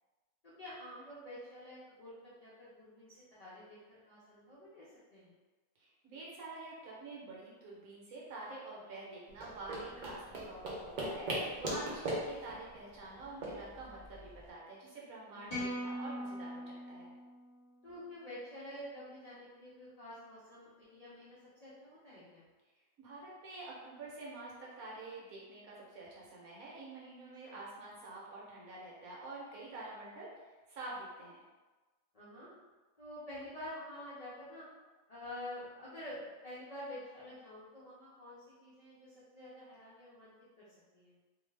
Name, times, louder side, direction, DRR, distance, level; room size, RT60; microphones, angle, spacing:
voice 1, 0.4-5.3 11.6-11.7 15.3-15.6 17.8-22.4 27.4-27.6 29.8-29.9 32.1-32.5 33.0-34.6 35.1-40.7 40.9-41.1, left 1 dB, 65° left, -10 dB, 0.3 m, -48 dB
voice 2, 5.8-17.1 23.0-31.4, right 2 dB, 65° right, -5 dB, 1.1 m, -48 dB
sound 1, 9.3-14.5, right 1 dB, 85° right, 0.4 m, -40 dB
Clean B str pick, 15.5-17.9, equal, 25° left, 1.0 m, -41 dB
2.6 x 2.4 x 3.2 m, 1.2 s
omnidirectional pair, 1.7 m